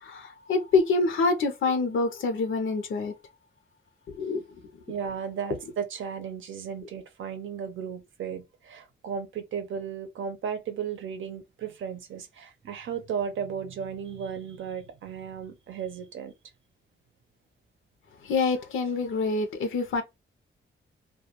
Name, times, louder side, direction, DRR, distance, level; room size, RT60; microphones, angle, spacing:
voice 1, 0.0-3.1 4.1-4.4 18.2-20.0, left 4 dB, 85° left, 0.6 m, -26 dB
voice 2, 4.9-16.3, right 7 dB, 85° right, 0.6 m, -35 dB
2.2 x 2.1 x 2.9 m
wide cardioid pair, 155°, 20 cm